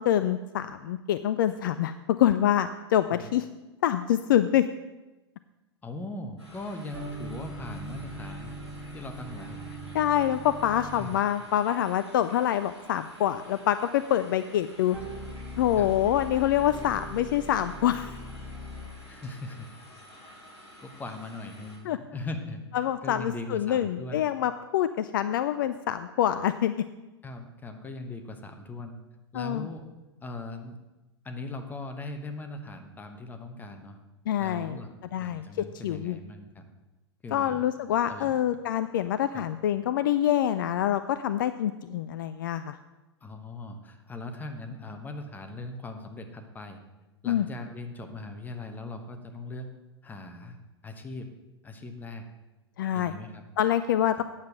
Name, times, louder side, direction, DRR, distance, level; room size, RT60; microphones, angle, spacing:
voice 1, 0.0-3.5 3.8-4.7 9.9-15.0 15.6-18.2 21.9-22.0 22.7-26.8 29.3-29.7 34.3-34.8 35.1-36.2 37.3-42.8 47.3-47.5 52.8-53.1 53.6-54.2, left 11 dB, 50° left, 12 dB, 0.4 m, -26 dB
voice 2, 5.8-8.5 8.9-9.6 11.0-11.2 15.8-15.9 19.0-19.7 20.8-24.3 27.2-29.0 29.3-29.8 30.2-30.8 31.2-34.0 34.4-36.7 37.2-37.6 38.1-38.3 39.3-39.5 43.2-46.8 47.2-49.7 50.0-50.6 50.8-51.3 51.6-52.3 52.9-53.4 54.1-54.2, left 2 dB, 10° left, 5 dB, 1.1 m, -40 dB
sound 1, 6.4-21.8, equal, 85° right, 4.0 m, -51 dB
sound 2, 6.9-11.4 14.9-19.1, right 1 dB, 15° right, 1.9 m, -40 dB
9.3 x 7.3 x 6.1 m, 1.1 s
figure-of-eight pair, 95°, 14 cm